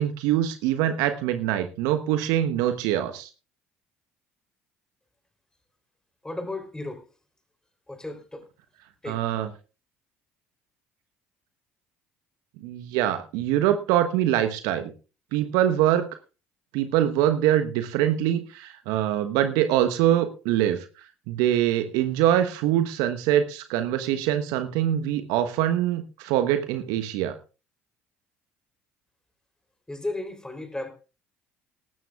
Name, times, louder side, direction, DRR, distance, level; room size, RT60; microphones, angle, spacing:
voice 1, 0.0-3.3 9.1-9.5 12.6-14.9 15.3-16.1 16.7-20.8 21.3-27.3, right 11 dB, 65° right, 1.1 m, -24 dB
voice 2, 6.2-7.1 7.9-8.5 9.0-9.2 29.9-30.9, left 2 dB, 10° left, 3.5 m, -34 dB
19.0 x 14.0 x 2.4 m
figure-of-eight pair, 55°, 7 cm